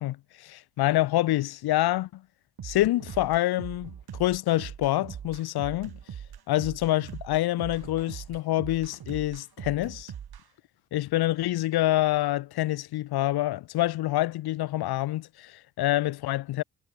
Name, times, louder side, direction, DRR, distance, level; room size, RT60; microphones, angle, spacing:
voice 1, 0.0-2.2 2.6-5.9 6.5-10.1 10.9-16.6, left 15 dB, 60° left, 0.7 m, -26 dB
sound 1, 2.6-10.4, right 9 dB, 60° right, 5.6 m, -41 dB
hypercardioid pair, 45°, 43 cm